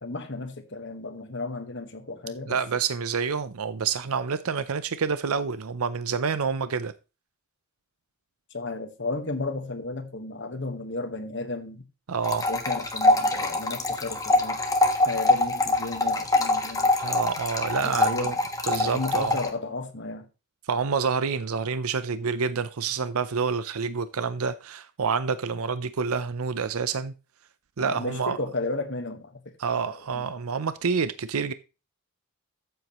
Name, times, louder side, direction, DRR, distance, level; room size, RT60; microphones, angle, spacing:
voice 1, 0.0-2.6 8.5-11.8 12.5-14.6 15.0-17.0 17.8-18.4 18.7-20.3 27.8-29.4 29.8-30.2, left 2 dB, 55° left, 1.5 m, -34 dB
voice 2, 2.5-6.9 12.1-12.5 17.0-18.3 18.7-19.4 20.7-27.1 27.8-28.4 29.6-31.5, right 5 dB, 75° right, 0.6 m, -28 dB
sound 1, 12.2-19.5, left 2 dB, 15° left, 1.2 m, -24 dB
14.0 x 7.8 x 3.0 m
head